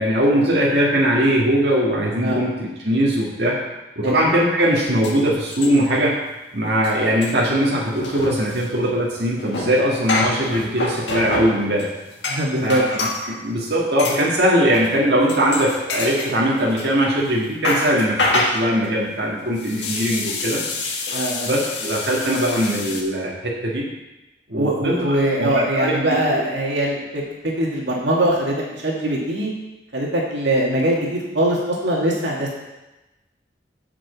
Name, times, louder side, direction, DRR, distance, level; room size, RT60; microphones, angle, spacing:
voice 1, 0.0-3.6 4.0-6.2 6.5-11.9 12.6-12.8 13.3-20.6 21.5-23.8 24.5-25.9 26.3-26.4, equal, 65° right, -5 dB, 2.0 m, -20 dB
sound 1, 4.6-4.7 5.0-6.1 6.3-6.5 6.7-13.3 14.0-14.3 14.7-15.0 15.3-16.9 17.3-23.0, left 2 dB, 80° left, 1.5 m, -27 dB
voice 2, 12.3-12.8 21.1-21.5 24.6-27.2 27.6-29.5 29.9-32.5, right 1 dB, 85° right, -3 dB, 2.2 m, -22 dB
7.8 x 6.2 x 6.9 m, 1.0 s
head